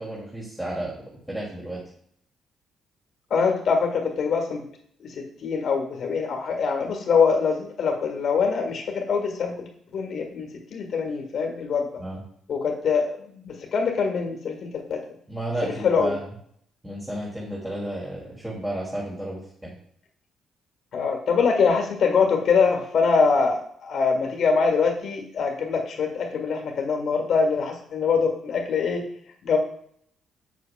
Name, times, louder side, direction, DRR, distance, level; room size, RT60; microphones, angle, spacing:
voice 1, 0.0-1.8 12.0-12.2 15.3-16.2 16.8-19.7, right 1 dB, 10° right, -6 dB, 2.7 m, -32 dB
voice 2, 3.3-4.7 5.0-11.9 12.5-15.0 15.6-16.2 20.9-29.1 29.4-29.6, left 5 dB, 65° left, 3 dB, 1.7 m, -24 dB
8.1 x 7.5 x 2.4 m, 0.66 s
supercardioid pair, 70°, 0 cm